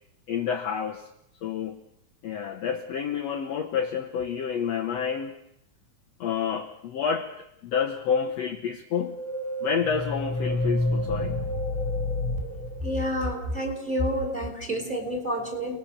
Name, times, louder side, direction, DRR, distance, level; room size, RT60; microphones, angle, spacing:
voice 1, 0.3-1.1 1.4-1.8 2.2-5.4 6.2-9.2 9.6-11.4, left 7 dB, 60° left, 5 dB, 2.0 m, -29 dB
sound 1, 8.9-13.6, left 1 dB, 40° left, 2.8 m, -29 dB
voice 2, 12.8-15.8, equal, 15° right, 3 dB, 4.5 m, -29 dB
30.0 x 20.0 x 6.8 m, 0.78 s
omnidirectional pair, 3.9 m